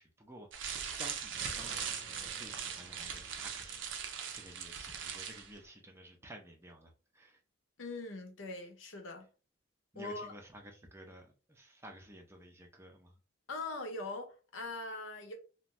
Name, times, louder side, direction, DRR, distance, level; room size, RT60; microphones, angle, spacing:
voice 1, 0.0-7.4 9.9-13.2, right 1 dB, 15° right, 0.4 m, -53 dB
sound 1, 0.5-5.5, right 7 dB, 65° right, 0.5 m, -40 dB
sound 2, 1.3-6.2, equal, 5° left, 0.8 m, -60 dB
voice 2, 7.8-9.3 9.9-10.3 13.5-15.3, left 2 dB, 75° left, 0.7 m, -41 dB
2.5 x 2.2 x 3.1 m
head